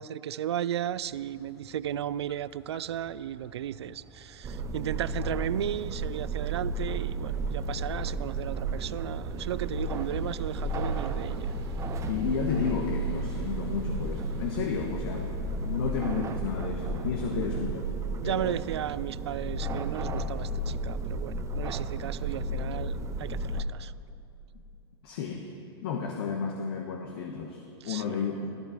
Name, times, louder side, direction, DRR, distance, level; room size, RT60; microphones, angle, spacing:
voice 1, 0.0-11.5 17.3-17.4 18.1-23.9 27.8-28.2, right 10 dB, 75° right, 18 dB, 0.4 m, -35 dB
sound 1, 0.7-16.4, right 2 dB, 60° right, 2.0 m, -52 dB
sound 2, 4.4-23.6, right 2 dB, 20° right, 0.9 m, -33 dB
voice 2, 12.1-15.3 15.6-17.9 18.2-18.6 25.0-25.5 25.8-28.6, left 6 dB, 60° left, 2 dB, 1.4 m, -32 dB
14.5 x 13.5 x 5.0 m, 2.5 s
hypercardioid pair, 105°, 14 cm